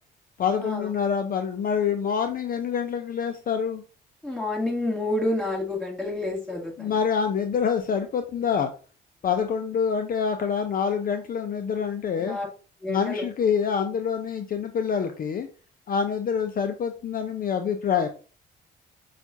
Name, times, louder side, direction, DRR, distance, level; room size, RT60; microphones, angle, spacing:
voice 1, 0.4-3.8 6.8-8.7 9.2-12.4 12.9-15.5 15.9-18.1, left 7 dB, 45° left, 7 dB, 0.5 m, -26 dB
voice 2, 4.2-7.0 12.2-12.5 12.8-13.3, left 2 dB, 5° left, -2 dB, 1.8 m, -29 dB
5.8 x 2.4 x 2.7 m, 0.36 s
cardioid pair, 90°, 20 cm